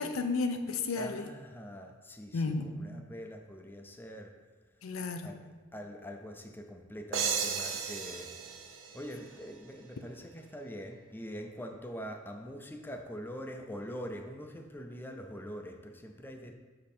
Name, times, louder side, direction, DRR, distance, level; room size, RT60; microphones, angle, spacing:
voice 1, 0.0-1.3 2.3-2.7 4.8-5.3, left 4 dB, 75° left, 7 dB, 0.6 m, -32 dB
voice 2, 1.0-4.4 5.2-5.4 5.7-8.4 8.9-16.5, equal, 10° left, 4 dB, 0.5 m, -44 dB
sound 1, 7.1-9.8, right 6 dB, 65° right, 0.7 m, -35 dB
6.0 x 5.3 x 4.3 m, 1.3 s
head